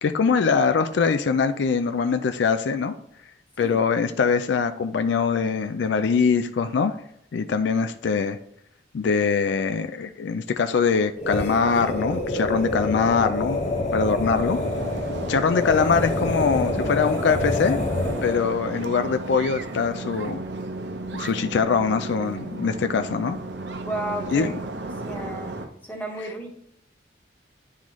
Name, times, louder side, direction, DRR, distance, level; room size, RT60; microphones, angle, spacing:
voice 1, 0.0-2.9 3.6-6.9 7.3-8.4 8.9-13.6 13.9-14.6 15.3-17.8 18.2-20.4 21.1-23.4 24.3-24.6, left 5 dB, 65° left, 8 dB, 0.4 m, -23 dB
sound 1, 11.2-18.5, left 2 dB, 35° left, 0.9 m, -27 dB
sound 2, 14.3-25.7, right 2 dB, 65° right, 0.7 m, -34 dB
voice 2, 23.8-26.5, right 1 dB, 10° left, 0 dB, 1.2 m, -34 dB
10.0 x 3.8 x 3.1 m, 0.76 s
head